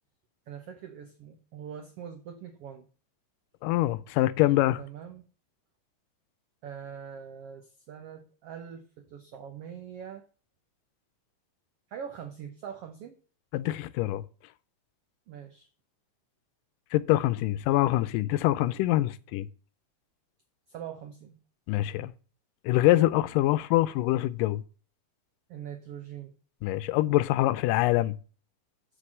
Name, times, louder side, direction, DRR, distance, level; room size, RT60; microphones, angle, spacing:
voice 1, 0.5-2.9 4.8-5.3 6.6-10.2 11.9-13.2 15.3-15.7 20.7-21.4 25.5-26.3, right 8 dB, 85° right, 1.3 m, -43 dB
voice 2, 3.6-4.8 13.5-14.2 16.9-19.5 21.7-22.1 22.7-24.6 26.6-28.2, left 16 dB, 85° left, 2.2 m, -25 dB
6.6 x 6.0 x 7.3 m
omnidirectional pair, 3.8 m